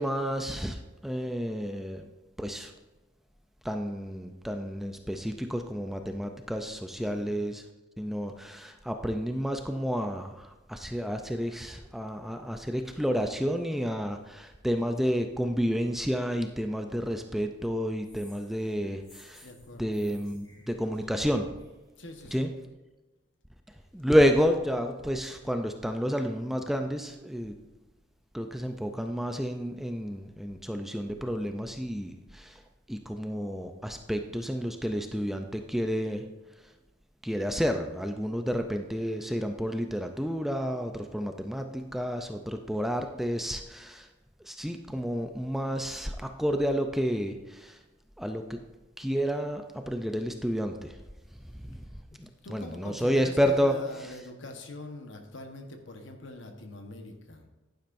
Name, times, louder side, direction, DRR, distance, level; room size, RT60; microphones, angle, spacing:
voice 1, 0.0-2.1 2.4-2.7 3.6-7.6 8.0-19.5 19.8-21.5 22.3-22.5 23.9-27.6 28.3-32.6 32.9-36.3 37.2-44.1 44.5-47.8 48.2-48.6 49.0-51.0 51.7-51.8 52.2-53.8, equal, ahead, 5 dB, 0.4 m, -30 dB
sound 1, 18.0-21.8, left 1 dB, 20° left, 3.2 m, -58 dB
voice 2, 19.4-19.9 22.0-22.5 52.1-57.5, left 1 dB, 70° left, 4 dB, 1.2 m, -44 dB
10.5 x 9.9 x 2.6 m, 1.1 s
head